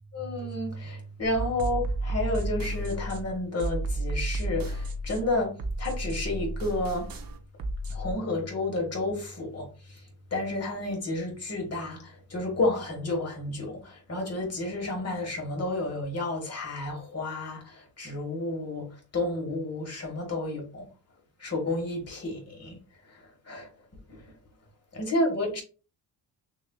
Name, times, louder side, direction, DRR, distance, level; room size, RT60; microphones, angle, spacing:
voice 1, 0.1-7.1 7.9-20.9 21.4-22.8 23.0-23.7 24.1-24.3 24.9-25.6, left 2 dB, 35° left, 1.4 m, -31 dB
sound 1, 1.2-8.1, right 2 dB, 50° right, 0.7 m, -32 dB
6.3 x 2.5 x 2.3 m
cardioid pair, 145°, 45 cm